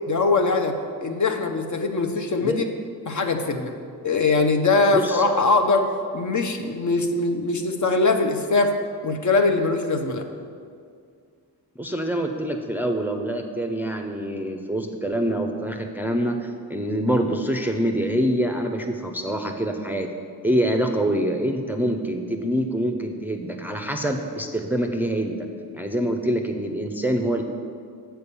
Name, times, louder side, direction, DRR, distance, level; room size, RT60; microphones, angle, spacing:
voice 1, 0.1-2.6 3.1-3.7 4.0-5.8 6.1-8.7 9.0-10.2, left 3 dB, 45° left, 4 dB, 0.9 m, -22 dB
voice 2, 4.9-5.3 11.8-20.1 20.4-25.5 25.7-27.4, right 1 dB, 5° right, 3 dB, 0.6 m, -25 dB
6.9 x 4.5 x 6.8 m, 2.2 s
supercardioid pair, 50°, 42 cm